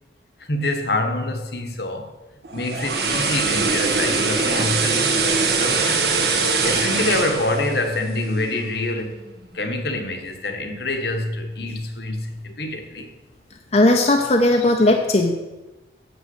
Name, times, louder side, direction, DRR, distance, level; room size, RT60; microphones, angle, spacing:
voice 1, 0.5-2.1 2.5-6.2 6.6-9.2 9.5-13.1, left 2 dB, 65° left, 1.4 m, -26 dB
Dyson Hand Dryer short, 2.4-8.6 9.0-9.2, right 4 dB, 65° right, 1.5 m, -22 dB
voice 2, 13.7-15.3, left 1 dB, 35° left, 0.8 m, -17 dB
8.2 x 7.2 x 7.9 m
head